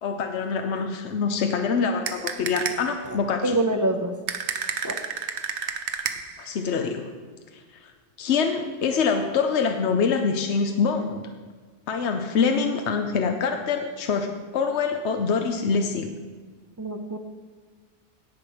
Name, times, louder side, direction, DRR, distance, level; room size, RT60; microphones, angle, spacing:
voice 1, 0.0-3.6 6.4-7.1 8.2-11.2 11.9-16.1, left 5 dB, 75° left, 5 dB, 1.1 m, -25 dB
sound 1, 2.1-3.0 4.3-6.5, right 7 dB, 75° right, 1.1 m, -31 dB
voice 2, 3.0-4.1 4.8-5.0 16.8-17.2, right 1 dB, 20° right, 5 dB, 0.8 m, -26 dB
17.5 x 6.0 x 4.9 m, 1.5 s
omnidirectional pair, 1.2 m